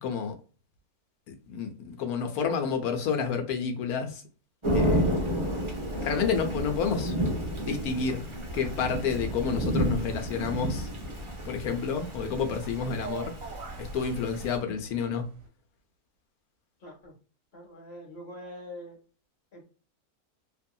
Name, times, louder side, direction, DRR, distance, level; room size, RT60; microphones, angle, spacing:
voice 1, 0.0-0.4 1.3-4.2 4.7-5.1 6.0-7.1 7.6-8.2 8.5-10.9 11.4-13.3 13.8-15.3, left 6 dB, 90° left, 1.2 m, -30 dB
Thunder / Rain, 4.6-14.6, equal, 25° right, 0.7 m, -31 dB
sound 1, 9.9-15.5, right 4 dB, 65° right, 1.0 m, -45 dB
voice 2, 16.8-17.1 17.5-19.0 19.5-19.6, equal, 45° left, 1.6 m, -44 dB
2.9 x 2.7 x 2.2 m
omnidirectional pair, 1.5 m